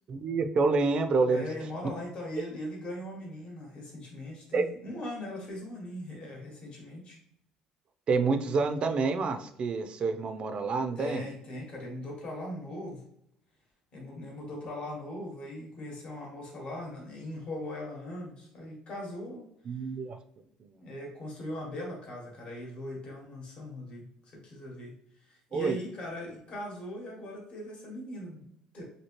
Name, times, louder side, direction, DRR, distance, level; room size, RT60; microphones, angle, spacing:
voice 1, 0.1-1.7 4.5-4.6 8.1-11.2 19.7-20.2 20.6-20.7 25.5-25.8, right 4 dB, 45° right, 8 dB, 0.4 m, -28 dB
voice 2, 1.3-7.2 11.0-13.0 13.9-19.5 20.8-24.9 25.3-28.8, left 1 dB, 45° left, -2 dB, 1.1 m, -40 dB
2.9 x 2.7 x 2.9 m, 0.69 s
cardioid pair, 100°, 2 cm